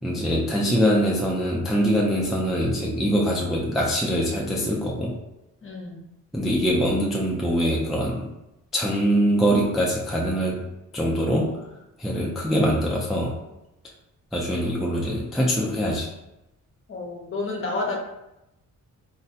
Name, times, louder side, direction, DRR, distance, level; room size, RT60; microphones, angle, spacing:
voice 1, 0.0-5.1 6.3-8.3 8.7-10.6 10.9-11.5 12.0-13.4 14.3-16.1, equal, ahead, -3 dB, 0.3 m, -23 dB
voice 2, 5.6-6.0 16.9-18.0, left 3 dB, 40° left, -1 dB, 0.7 m, -30 dB
3.9 x 2.1 x 2.7 m, 0.91 s
wide cardioid pair, 130°, 33 cm